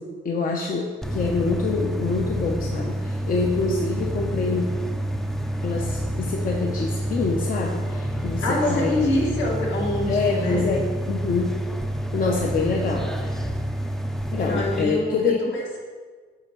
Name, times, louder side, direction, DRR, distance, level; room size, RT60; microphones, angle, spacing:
voice 1, 0.0-4.6 5.6-9.1 10.1-11.6 12.1-13.4 14.3-15.4, left 4 dB, 45° left, 0 dB, 0.7 m, -26 dB
sound 1, 1.0-14.8, equal, ahead, 0.5 m, -28 dB
voice 2, 8.4-10.7 14.4-15.8, left 1 dB, 65° left, -2 dB, 1.8 m, -26 dB
8.0 x 3.0 x 5.6 m, 1.5 s
cardioid pair, 90°, 20 cm